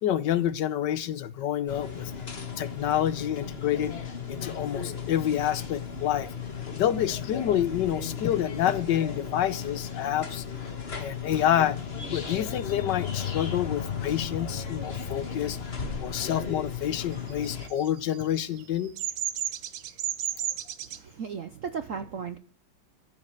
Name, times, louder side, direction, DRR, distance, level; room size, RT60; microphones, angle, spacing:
voice 1, 0.0-2.1 2.6-4.0 4.3-6.3 6.8-10.4 11.0-11.8 12.1-15.6 16.0-18.9, left 11 dB, 70° left, 1.4 m, -28 dB
sound 1, 1.7-17.7, left 6 dB, 35° left, 1.6 m, -35 dB
Bird vocalization bird call bird song, 17.3-21.0, right 11 dB, 85° right, 1.7 m, -33 dB
voice 2, 20.8-22.4, right 6 dB, 55° right, 0.9 m, -36 dB
14.0 x 5.3 x 9.3 m
omnidirectional pair, 2.1 m